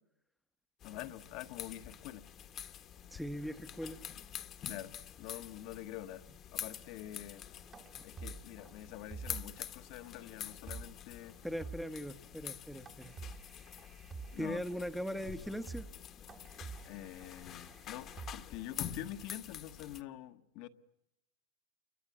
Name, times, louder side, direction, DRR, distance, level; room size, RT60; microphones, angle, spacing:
voice 1, 0.8-2.3 4.6-6.2 6.5-7.5 8.0-11.4 14.3-14.6 16.8-20.7, left 13 dB, 50° left, 1.3 m, -46 dB
sound 1, 0.8-20.0, left 10 dB, 30° left, 1.3 m, -47 dB
voice 2, 3.1-4.0 11.4-13.1 14.4-15.8, equal, ahead, 1.0 m, -39 dB
sound 2, 7.7-9.7 10.0-10.1 10.5-11.0 11.3-11.4 11.6-12.1 12.9-14.7 15.2-15.3 15.5-16.0 16.3-18.8, right 4 dB, 20° right, 1.3 m, -48 dB
29.0 x 23.5 x 8.6 m
supercardioid pair, 145°, 0 cm